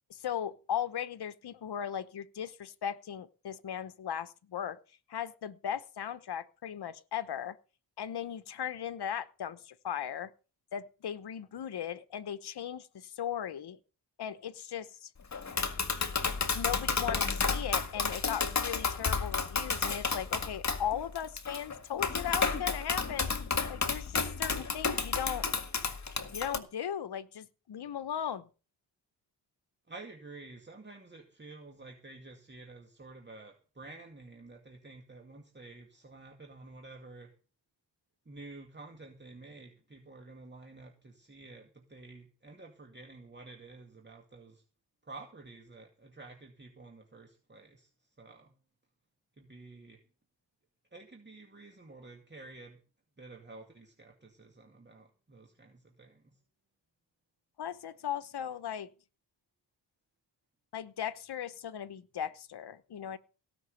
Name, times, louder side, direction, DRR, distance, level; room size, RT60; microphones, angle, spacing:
voice 1, 0.1-4.8 5.1-7.6 8.0-10.3 10.7-13.8 14.2-15.1 16.5-23.3 23.7-25.4 26.3-28.5 57.6-58.9 60.7-63.2, left 9 dB, 60° left, 1.0 m, -37 dB
Tap, 15.3-26.6, left 4 dB, 40° left, 1.9 m, -31 dB
voice 2, 29.9-37.3 38.3-44.6 45.0-48.5 49.4-50.0 50.9-52.8 53.2-56.4, right 3 dB, 25° right, 2.3 m, -50 dB
17.0 x 6.2 x 7.8 m
cardioid pair, 95°, 44 cm